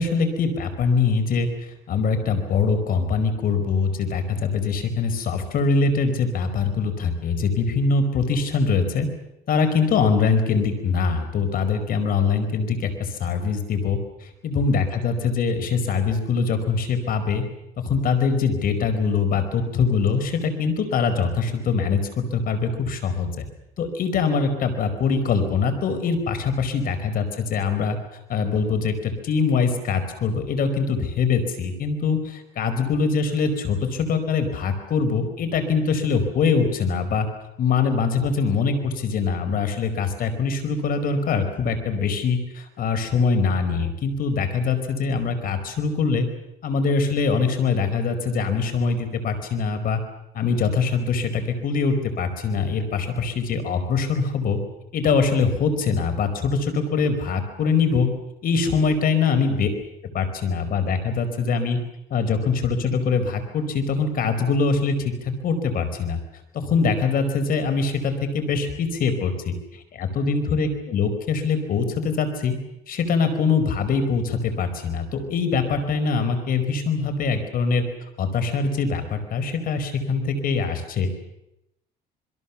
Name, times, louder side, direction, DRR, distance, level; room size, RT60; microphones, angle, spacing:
voice 1, 0.0-1.5 1.9-9.1 9.5-17.4 17.8-23.5 23.8-28.0 28.3-37.3 37.6-46.3 46.6-50.0 50.3-54.6 54.9-58.1 58.4-59.7 60.1-61.8 62.1-66.2 66.5-72.5 72.9-77.8 78.2-81.2, left 5 dB, 60° left, 8 dB, 4.8 m, -23 dB
26.5 x 22.5 x 7.2 m, 0.83 s
cardioid pair, 110°, 17 cm